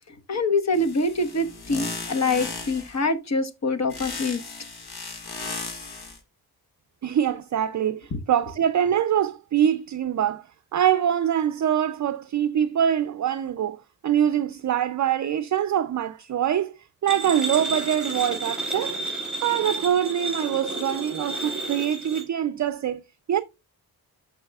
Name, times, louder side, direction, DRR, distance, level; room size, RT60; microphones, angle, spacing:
voice 1, 0.3-4.4 8.1-8.2, left 2 dB, 45° left, 1.3 m, -25 dB
sound 1, 0.7-3.0 3.9-6.2, left 4 dB, 75° left, 1.9 m, -36 dB
voice 2, 7.0-10.5 10.7-19.0 19.4-23.0 23.3-23.4, right 9 dB, 50° right, 0.5 m, -24 dB
sound 2, 17.1-22.2, right 2 dB, ahead, 4.6 m, -31 dB
13.0 x 4.8 x 2.3 m
cardioid pair, 95°, 39 cm